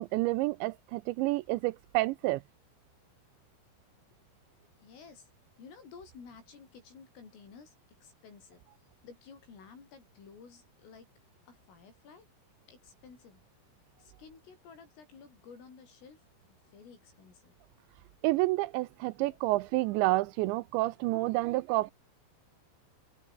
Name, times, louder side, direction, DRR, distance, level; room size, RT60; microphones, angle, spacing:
voice 1, 0.0-2.4 18.2-21.9, right 19 dB, 85° right, 2.6 m, -29 dB
voice 2, 4.8-5.3 5.6-8.6 9.0-11.1 11.5-12.3 12.7-13.4 14.0-17.6 19.3-19.4 19.8-19.9, left 5 dB, 80° left, 9.3 m, -53 dB
omnidirectional pair, 5.7 m